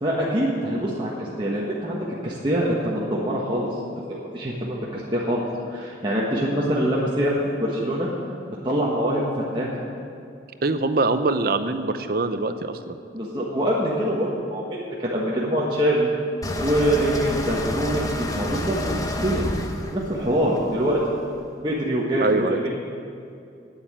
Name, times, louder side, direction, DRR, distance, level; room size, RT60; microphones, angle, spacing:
voice 1, 0.0-3.8 4.1-5.4 5.7-8.1 8.6-9.8 13.1-16.1 16.6-19.4 19.9-21.0 21.6-22.8, equal, 25° right, -6 dB, 1.3 m, -24 dB
voice 2, 10.6-13.0 22.2-22.6, right 3 dB, 55° right, 10 dB, 0.6 m, -23 dB
sound 1, 16.4-21.4, left 1 dB, 20° left, 0.8 m, -29 dB
9.4 x 8.7 x 8.8 m, 2.5 s
head